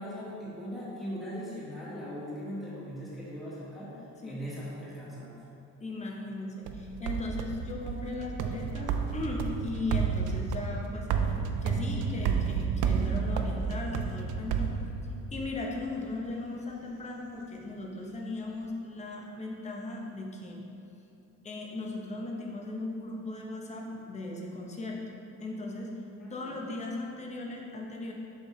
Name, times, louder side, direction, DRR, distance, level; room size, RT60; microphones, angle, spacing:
voice 1, 0.0-5.3 26.2-26.7, equal, ahead, -10 dB, 1.5 m, -40 dB
voice 2, 5.8-11.1 11.6-14.7 15.3-20.6 21.4-25.9 26.3-28.1, left 2 dB, 20° left, -1 dB, 0.8 m, -37 dB
sound 1, 6.7-15.4, right 6 dB, 75° right, 0.5 m, -31 dB
7.3 x 5.2 x 3.2 m, 2.8 s
cardioid pair, 140°, 31 cm